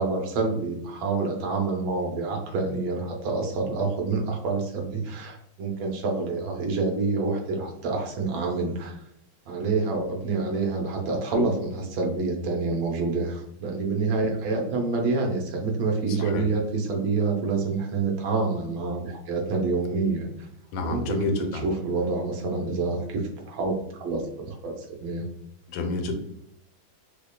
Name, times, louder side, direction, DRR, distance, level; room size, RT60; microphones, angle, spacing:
voice 1, 0.0-9.0 9.5-20.3 20.8-21.2 21.5-25.2, right 3 dB, 80° right, 1 dB, 1.5 m, -27 dB
voice 2, 16.1-16.5 20.7-21.7 25.7-26.1, left 4 dB, 85° left, 4 dB, 1.4 m, -29 dB
5.1 x 2.2 x 2.3 m, 0.75 s
omnidirectional pair, 2.2 m